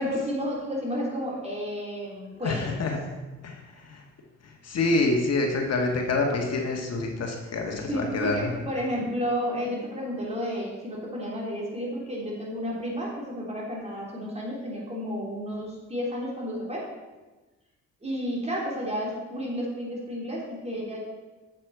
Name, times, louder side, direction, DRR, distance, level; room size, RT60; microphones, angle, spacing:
voice 1, 0.0-2.8 7.8-16.9 18.0-21.0, equal, 20° right, -4 dB, 3.2 m, -31 dB
voice 2, 2.4-3.0 3.4-3.6 3.9-4.0 4.6-8.5, left 3 dB, 55° left, 1 dB, 1.4 m, -26 dB
7.7 x 7.4 x 4.6 m, 1.2 s
cardioid pair, 90°, 30 cm